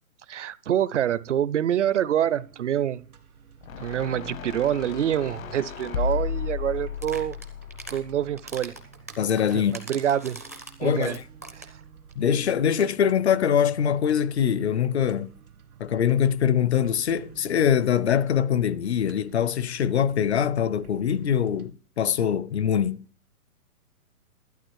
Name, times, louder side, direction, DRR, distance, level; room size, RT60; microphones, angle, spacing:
voice 1, 0.3-3.0 3.8-7.4 7.9-8.7 9.5-9.6 9.9-10.4 10.8-11.2 11.5-11.6, right 10 dB, 55° right, 0.6 m, -26 dB
sound 1, 2.2-21.7, right 7 dB, 80° right, 2.4 m, -51 dB
sound 2, 3.6-8.9, left 6 dB, 65° left, 1.0 m, -34 dB
sound 3, 6.9-8.0 8.4-11.8 12.1-12.2 12.4-12.5 12.7-13.0, right 2 dB, 10° right, 0.4 m, -42 dB
voice 2, 9.2-9.8 10.8-11.2 12.2-15.3 15.8-23.0, left 8 dB, 50° left, 0.6 m, -23 dB
12.0 x 10.5 x 4.5 m
hypercardioid pair, 165°, 44 cm